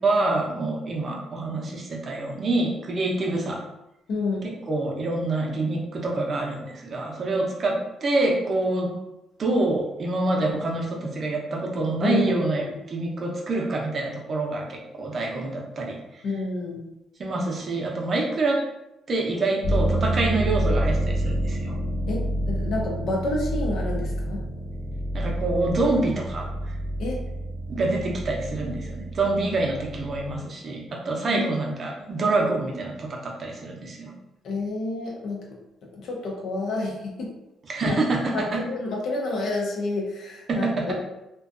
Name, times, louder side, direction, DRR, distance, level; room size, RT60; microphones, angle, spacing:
voice 1, 0.0-3.6 4.4-8.9 9.4-16.3 17.2-18.6 19.1-21.8 25.1-26.7 27.7-34.1 37.7-38.6 40.5-40.9, right 2 dB, 45° right, -1 dB, 0.6 m, -26 dB
voice 2, 4.1-4.5 12.0-12.8 16.2-16.8 22.1-24.4 27.0-27.2 31.3-31.4 34.4-35.4 36.0-37.3 37.8-38.0 38.3-41.0, left 2 dB, 70° left, -1 dB, 0.7 m, -29 dB
sound 1, 19.6-30.4, right 1 dB, 55° left, 0.3 m, -28 dB
2.5 x 2.3 x 2.4 m, 0.91 s
cardioid pair, 90°, 0 cm